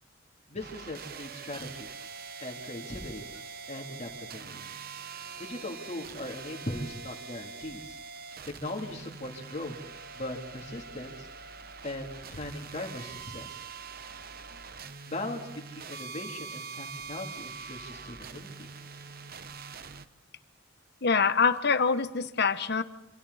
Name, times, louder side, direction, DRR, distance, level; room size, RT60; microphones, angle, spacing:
voice 1, 0.5-1.9 2.4-3.3 3.7-4.7 5.4-8.0 8.4-9.7 10.1-11.3 11.8-13.6 15.1-18.7, left 1 dB, 35° left, 1 dB, 3.2 m, -39 dB
sound 1, 0.6-20.1, right 5 dB, 50° right, 0.9 m, -44 dB
voice 2, 21.0-22.8, left 5 dB, 55° left, 12 dB, 1.0 m, -25 dB
27.5 x 26.5 x 4.2 m, 0.87 s
head